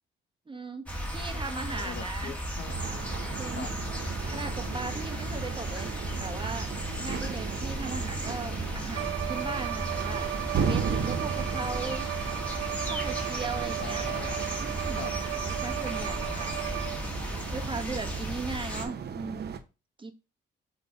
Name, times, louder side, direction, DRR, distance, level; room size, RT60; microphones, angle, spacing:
voice 1, 0.5-0.9 1.1-2.3 3.4-3.7 4.3-6.7 7.0-12.1 12.8-14.1 14.6-15.1 15.6-16.7 17.5-19.6 20.0-20.1, right 3 dB, 25° right, 1.2 m, -38 dB
sound 1, 0.9-18.8, equal, 5° left, 1.7 m, -35 dB
voice 2, 1.3-2.8 3.5-3.8 13.8-14.4 15.0-15.2, left 6 dB, 60° left, 1.3 m, -42 dB
sound 2, 2.7-19.6, right 7 dB, 55° right, 0.9 m, -36 dB
Bowed string instrument, 8.9-17.2, right 16 dB, 80° right, 0.4 m, -35 dB
5.7 x 3.3 x 5.3 m
cardioid pair, 90°, 20 cm